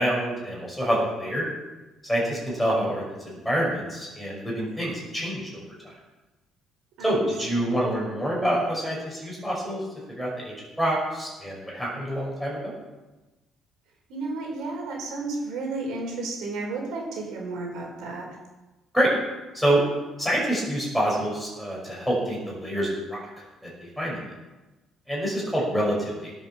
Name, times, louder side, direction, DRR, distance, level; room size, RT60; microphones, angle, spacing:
voice 1, 0.0-1.5 2.0-5.9 7.0-9.8 10.1-12.7 18.9-19.1 19.5-19.8 20.2-23.2 23.6-23.7 24.0-24.2 25.1-26.3, right 1 dB, ahead, -4 dB, 5.7 m, -26 dB
voice 2, 14.1-18.4, right 3 dB, 70° right, 0 dB, 4.7 m, -32 dB
18.0 x 8.1 x 7.0 m, 1.1 s
cardioid pair, 155°, 0 cm